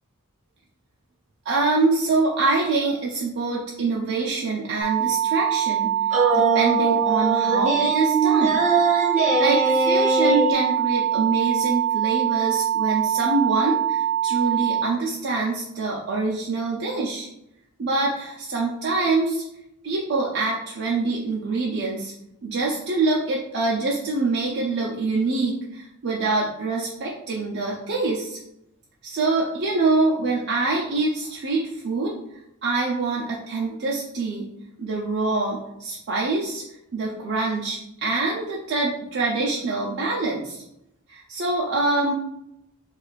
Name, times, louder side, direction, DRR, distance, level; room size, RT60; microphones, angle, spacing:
voice 1, 1.5-8.6 9.4-17.3 17.8-19.4 19.8-22.1 22.4-28.4 29.0-32.1 32.6-34.5 34.8-36.6 36.9-40.6 41.1-42.1, right 3 dB, 50° right, -4 dB, 0.5 m, -25 dB
sound 1, 4.8-14.8, right 11 dB, 40° left, 0.7 m, -24 dB
sound 2, 6.1-10.5, right 3 dB, 35° right, 1.2 m, -22 dB
4.6 x 2.4 x 2.4 m, 0.83 s
head